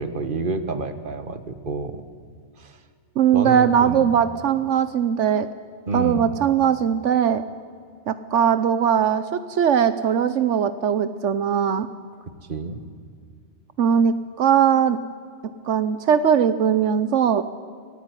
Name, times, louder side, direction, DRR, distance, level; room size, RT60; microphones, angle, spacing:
voice 1, 0.0-2.0 2.6-2.8 3.3-4.0 5.9-6.4 12.4-12.8, right 3 dB, 45° right, 10 dB, 1.7 m, -29 dB
voice 2, 3.2-5.5 5.9-7.4 8.1-9.2 9.5-11.9 13.8-15.0 15.7-17.4, right 8 dB, 85° right, 13 dB, 1.2 m, -20 dB
25.0 x 17.0 x 9.8 m, 2.1 s
omnidirectional pair, 1.2 m